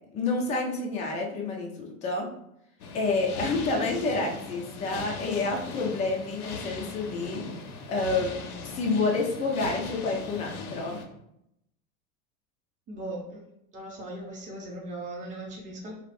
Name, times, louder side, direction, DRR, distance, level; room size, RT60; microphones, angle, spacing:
voice 1, 0.1-2.3 2.9-7.6 7.9-8.3 8.6-11.0, left 3 dB, 20° left, -1 dB, 0.3 m, -29 dB
sound 1, 2.8-11.1, left 4 dB, 90° left, 0.6 m, -39 dB
voice 2, 12.9-13.5 13.7-16.0, right 1 dB, 15° right, -3 dB, 0.7 m, -38 dB
2.4 x 2.0 x 3.2 m, 0.80 s
hypercardioid pair, 100°, 43 cm